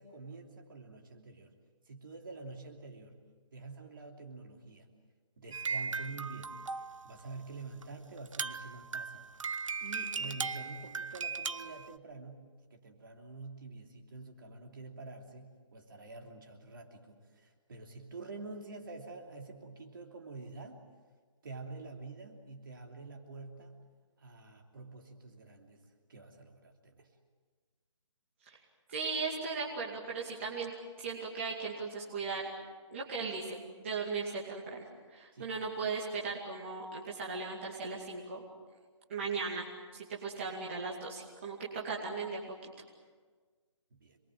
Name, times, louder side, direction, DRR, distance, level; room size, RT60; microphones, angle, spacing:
voice 1, 0.0-1.5 1.9-3.2 3.5-4.9 5.4-6.5 7.0-9.2 9.8-12.4 12.7-20.8 21.4-23.7 24.2-27.1 35.3-35.5 43.9-44.2, right 3 dB, 45° right, 2 dB, 3.0 m, -47 dB
sound 1, 5.5-7.2 7.8-7.9 8.2-12.0, right 5 dB, 90° right, 0.9 m, -38 dB
voice 2, 28.9-30.7 31.0-32.5 32.9-38.4 39.1-39.7 39.9-42.6, right 4 dB, 25° right, -3 dB, 2.4 m, -37 dB
27.5 x 22.0 x 7.7 m, 1.5 s
hypercardioid pair, 180°, 16 cm